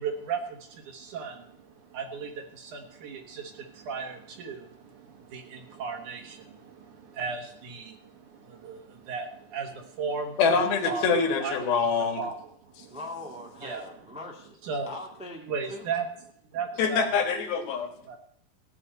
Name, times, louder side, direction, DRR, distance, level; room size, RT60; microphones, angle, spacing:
voice 1, 0.0-10.6 10.8-11.1 11.4-11.6 12.0-13.0 13.6-13.8 14.6-15.0 15.5-16.1 16.5-17.1 18.1-18.2, right 5 dB, 60° right, 4 dB, 2.5 m, -36 dB
voice 2, 10.4-12.2 16.8-17.9, left 5 dB, 75° left, 5 dB, 3.4 m, -25 dB
voice 3, 12.9-14.6 14.8-15.9, left 2 dB, 5° right, 0 dB, 0.9 m, -41 dB
16.0 x 5.8 x 8.8 m, 0.67 s
omnidirectional pair, 4.4 m